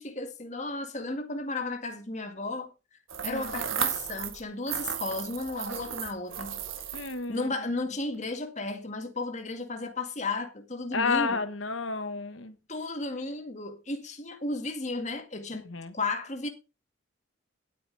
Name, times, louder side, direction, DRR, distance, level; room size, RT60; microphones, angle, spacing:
voice 1, 0.0-2.7 3.2-6.6 7.3-11.4 12.7-15.6 15.9-16.5, left 2 dB, 35° left, 1.9 m, -34 dB
sound 1, 3.1-4.4 4.7-7.2, right 8 dB, 90° right, 1.8 m, -34 dB
voice 2, 6.9-7.5 10.9-12.5 15.5-15.9, left 4 dB, 80° left, 1.4 m, -31 dB
18.0 x 9.1 x 3.4 m
head